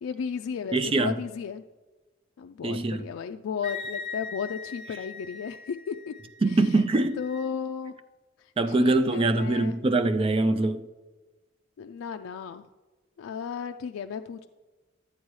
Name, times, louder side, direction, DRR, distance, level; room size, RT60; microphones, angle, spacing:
voice 1, 0.0-1.6 2.4-6.1 7.2-8.0 8.4-8.5 8.8-9.8 11.8-12.7 13.2-14.5, left 6 dB, 85° left, 0.3 m, -34 dB
voice 2, 0.7-1.1 2.6-3.0 6.4-7.2 8.6-10.9, right 2 dB, 30° right, 0.4 m, -23 dB
Wind instrument woodwind instrument, 3.6-7.5, left 5 dB, 30° left, 1.1 m, -41 dB
12.5 x 8.1 x 3.1 m
head